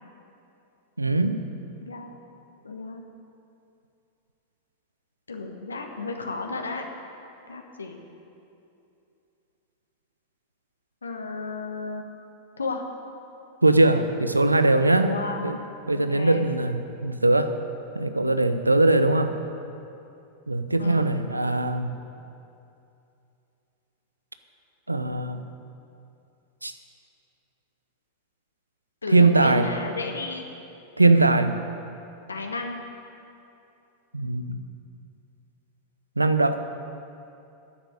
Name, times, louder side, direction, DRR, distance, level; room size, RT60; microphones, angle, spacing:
voice 1, 1.0-1.4 13.6-15.2 15.4-15.6 15.9-17.5 17.9-19.4 20.5-21.9 24.9-25.5 26.6-26.7 29.1-29.7 31.0-31.5 34.1-34.6 36.2-36.6, right 2 dB, 85° right, 10 dB, 0.6 m, -21 dB
voice 2, 1.8-2.2 2.6-3.0 5.3-6.8 7.5-8.0 11.0-12.1 12.6-12.8 15.0-15.4 15.9-16.4 20.8-21.1 29.0-30.4 32.3-32.8, left 3 dB, 75° left, 4 dB, 1.2 m, -33 dB
10.0 x 7.4 x 9.1 m, 2.7 s
figure-of-eight pair, 90°, 0 cm